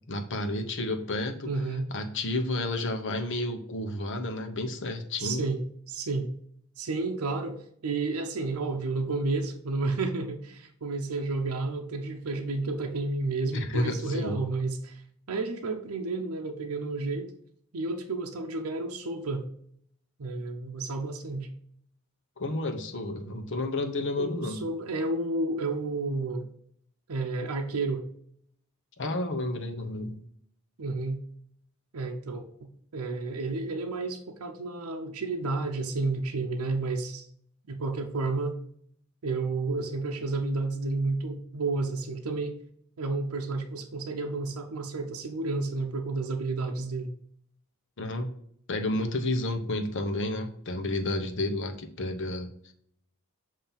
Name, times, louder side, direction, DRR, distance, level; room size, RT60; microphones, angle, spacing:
voice 1, 0.1-1.5 1.9-5.4 13.5-14.4 22.4-24.7 29.0-30.2 48.0-48.3 48.7-52.7, left 2 dB, 60° left, 5 dB, 0.9 m, -31 dB
voice 2, 1.4-1.9 5.2-6.3 6.8-15.0 15.3-17.3 17.7-19.4 20.2-21.5 24.2-26.5 27.1-28.0 30.8-31.2 31.9-37.3 37.7-38.6 39.2-42.6 43.0-47.1, right 3 dB, 75° right, 3 dB, 0.6 m, -31 dB
7.1 x 2.8 x 5.6 m, 0.65 s
head